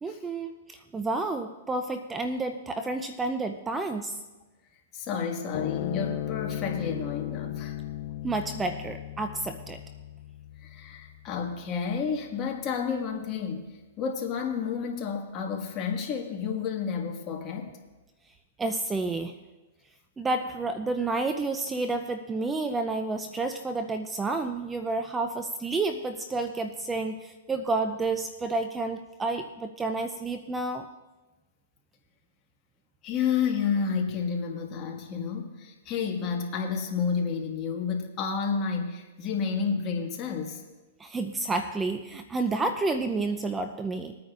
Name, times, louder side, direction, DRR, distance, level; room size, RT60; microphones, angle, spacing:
voice 1, 0.0-4.2 8.2-9.8 18.6-19.4 20.2-30.9 41.0-44.2, right 3 dB, 10° right, 8 dB, 0.5 m, -30 dB
voice 2, 4.9-7.8 10.6-17.8 33.0-40.6, left 6 dB, 30° left, 1 dB, 1.7 m, -30 dB
sound 1, 5.5-12.2, left 13 dB, 50° left, 0.4 m, -36 dB
21.5 x 9.3 x 2.5 m, 1.1 s
hypercardioid pair, 135°, 0 cm